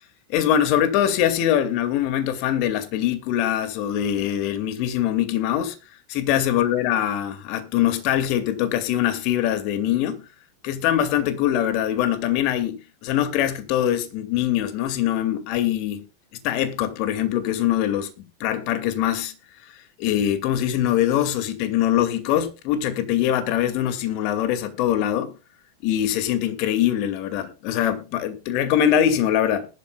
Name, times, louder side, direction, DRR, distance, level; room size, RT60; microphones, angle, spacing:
voice 1, 0.3-5.8 6.1-10.3 10.6-16.0 16.4-19.3 20.0-25.3 25.8-29.7, left 11 dB, 45° left, 2.3 m, -23 dB
20.5 x 12.0 x 2.4 m
figure-of-eight pair, 90°, 0 cm